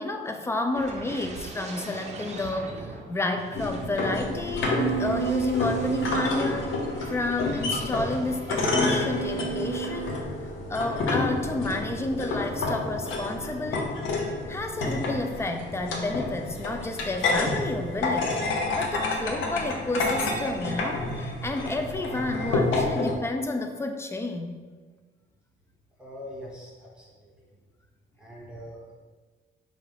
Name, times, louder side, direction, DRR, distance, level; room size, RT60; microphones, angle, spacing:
voice 1, 0.0-6.7 7.1-10.2 10.7-13.9 14.5-18.4 18.8-24.6, left 2 dB, 15° left, 5 dB, 0.4 m, -30 dB
sound 1, 0.7-9.2 9.6-9.9, right 3 dB, 35° right, 0.6 m, -42 dB
sound 2, 3.5-23.1, left 2 dB, 85° left, 0.7 m, -29 dB
sound 3, 4.8-10.2, right 8 dB, 85° right, 0.4 m, -34 dB
voice 2, 26.0-27.3 28.2-28.9, equal, 5° right, -5 dB, 0.9 m, -43 dB
5.2 x 2.5 x 3.3 m, 1.4 s
cardioid pair, 90°, 20 cm